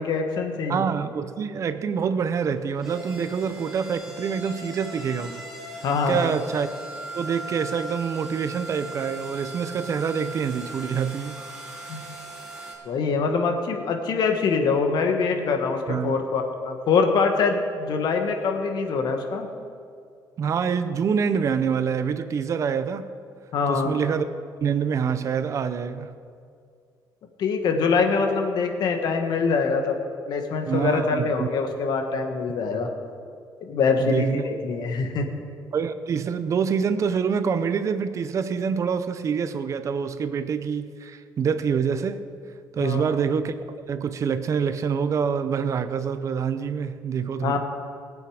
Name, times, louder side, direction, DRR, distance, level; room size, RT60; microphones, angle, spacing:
voice 1, 0.0-0.8 5.8-6.4 11.9-12.0 12.8-19.5 23.5-24.0 27.4-30.0 30.3-32.9 33.6-35.3 42.8-43.2 47.4-47.6, left 4 dB, 60° left, 5 dB, 1.4 m, -24 dB
voice 2, 0.7-5.5 6.1-6.7 7.1-11.4 15.9-16.2 20.4-23.1 23.7-24.3 24.6-26.1 30.7-31.5 34.0-34.4 35.7-42.3 42.7-47.6, right 6 dB, 40° right, 12 dB, 0.7 m, -26 dB
sound 1, 2.5-12.7, right 1 dB, 5° right, 2.7 m, -39 dB
19.0 x 8.6 x 4.9 m, 2.3 s
cardioid pair, 155°, 8 cm